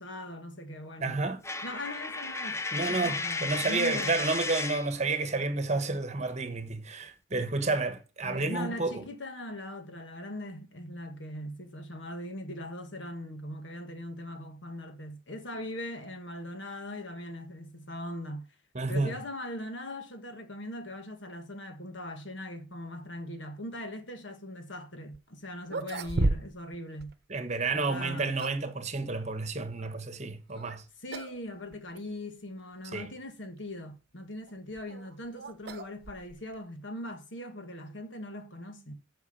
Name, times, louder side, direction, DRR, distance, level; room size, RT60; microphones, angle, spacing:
voice 1, 0.0-1.2 1.6-4.2 8.2-18.5 18.9-27.1 27.7-28.4 31.0-38.9, left 1 dB, 65° left, 1.6 m, -40 dB
voice 2, 1.0-1.4 2.7-9.0 18.7-19.2 27.3-30.8 32.9-33.1, right 3 dB, 35° right, 1.2 m, -30 dB
Coin (dropping), 1.4-5.0, left 3 dB, 15° left, 0.5 m, -34 dB
sound 1, 25.1-25.2 25.6-26.7 27.0-27.1 28.0-28.7 30.5-30.8 31.1-31.4 31.7-31.8 32.6-32.7 34.5-36.6, right 2 dB, 50° right, 0.9 m, -33 dB
8.4 x 6.0 x 7.0 m
head